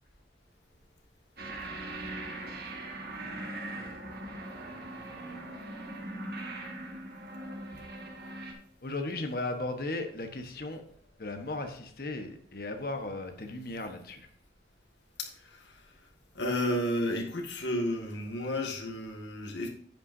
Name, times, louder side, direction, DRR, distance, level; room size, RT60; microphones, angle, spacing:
sound 1, 1.4-8.5, right 2 dB, 55° right, 1.9 m, -40 dB
voice 1, 8.8-10.8 11.2-14.3, left 2 dB, 55° left, 6 dB, 1.2 m, -36 dB
voice 2, 15.2-15.9 16.3-19.7, left 1 dB, 75° left, 1 dB, 1.9 m, -32 dB
10.5 x 8.8 x 2.7 m, 0.62 s
head